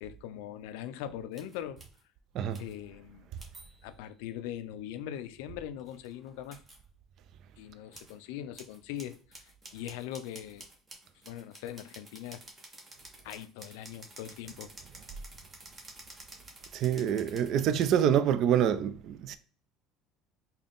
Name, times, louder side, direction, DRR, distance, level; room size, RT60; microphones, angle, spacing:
voice 1, 0.0-1.8 2.6-3.3 3.8-6.6 7.6-10.7 11.2-12.4 13.2-14.7, left 11 dB, 90° left, 0.3 m, -41 dB
sound 1, 1.3-2.0 2.5-2.7 3.4-4.0 5.8-6.8 7.9-8.1 8.5-18.0, right 2 dB, 20° right, 0.9 m, -51 dB
voice 2, 16.7-19.4, right 9 dB, 55° right, 0.3 m, -26 dB
3.7 x 2.2 x 3.5 m
cardioid pair, 130°, 0 cm